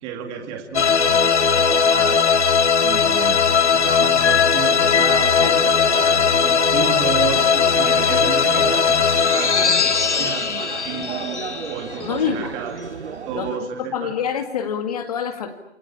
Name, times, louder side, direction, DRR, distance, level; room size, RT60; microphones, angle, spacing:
voice 1, 0.0-2.3 2.8-11.4 11.7-12.8 13.3-14.1, right 7 dB, 15° right, 4 dB, 2.3 m, -32 dB
sound 1, 0.7-12.2, left 6 dB, 85° left, 2.4 m, -18 dB
sound 2, 4.8-13.6, right 6 dB, 80° right, 2.1 m, -34 dB
voice 2, 12.0-12.5 13.3-15.5, left 8 dB, 35° left, 7 dB, 2.1 m, -26 dB
28.5 x 24.0 x 8.7 m, 0.76 s
hypercardioid pair, 165°, 33 cm